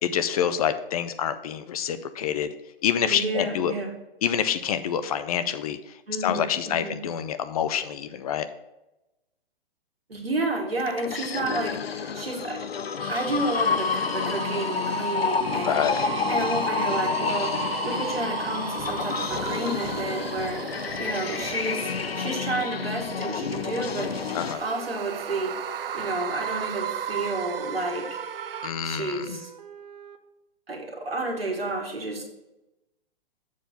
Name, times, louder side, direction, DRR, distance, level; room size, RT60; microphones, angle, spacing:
voice 1, 0.0-2.5 2.8-3.7 4.2-5.8 6.2-8.5 15.6-16.0 24.3-24.6 28.6-29.4, left 9 dB, 40° left, 11 dB, 0.5 m, -27 dB
voice 2, 3.0-3.9 6.1-7.0 10.1-12.6 13.1-25.5 25.9-28.2 28.8-29.5 30.7-32.2, right 2 dB, 90° right, 2 dB, 1.7 m, -31 dB
sound 1, 10.8-24.6, left 5 dB, 90° left, 0.6 m, -29 dB
sound 2, 13.0-22.9 23.5-28.7, right 8 dB, 70° right, 0.5 m, -35 dB
sound 3, 17.7-30.2, right 6 dB, 40° right, 0.8 m, -47 dB
7.2 x 4.4 x 5.7 m, 0.96 s
figure-of-eight pair, 125°, 29 cm